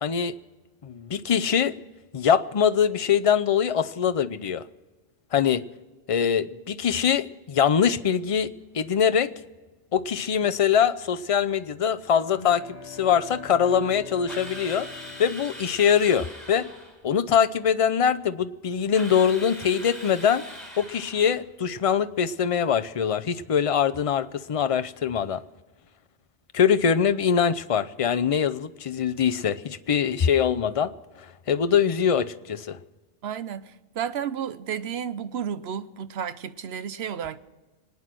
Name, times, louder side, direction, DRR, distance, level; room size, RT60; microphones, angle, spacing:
voice 1, 0.0-0.3 0.8-1.7 2.1-4.6 5.3-5.6 6.1-9.3 9.9-14.9 15.2-16.7 17.0-20.4 20.8-25.4 26.5-30.9 31.5-32.8, left 7 dB, 40° left, 0.5 m, -23 dB
sound 1, 12.2-16.2, left 4 dB, 60° left, 1.8 m, -43 dB
Drill, 14.3-17.0 18.9-21.4, equal, ahead, 4.6 m, -41 dB
voice 2, 33.2-37.4, right 8 dB, 65° right, 0.9 m, -32 dB
25.0 x 9.7 x 6.1 m
omnidirectional pair, 1.2 m